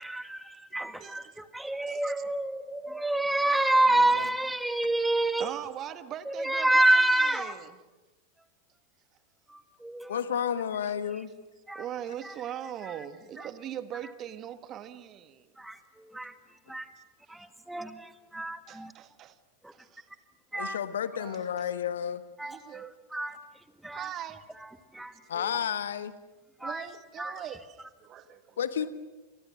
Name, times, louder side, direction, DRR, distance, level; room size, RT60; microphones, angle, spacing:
voice 1, 0.0-5.5 6.3-7.5 9.5-10.2 11.7-11.8 12.2-12.3 13.4-13.5 15.6-16.3 16.7-16.9 17.3-18.9 19.6-19.7 20.5-20.8 22.4-23.4 23.8-24.1 24.9-25.1 26.6-26.9 27.2-27.4, right 1 dB, 5° right, 1.8 m, -28 dB
voice 2, 1.0-1.4 1.9-2.1 5.4-7.8 11.7-15.5 17.0-17.1 17.3-17.4 18.7-19.4 19.7-20.1 21.1-21.7 22.4-22.9 23.9-24.5 26.6-28.7, right 10 dB, 30° right, 1.4 m, -41 dB
voice 3, 3.9-4.3 10.1-11.3 20.5-22.2 25.3-26.1 28.6-28.9, left 8 dB, 65° left, 1.4 m, -31 dB
29.0 x 28.0 x 6.4 m
figure-of-eight pair, 90°, 0 cm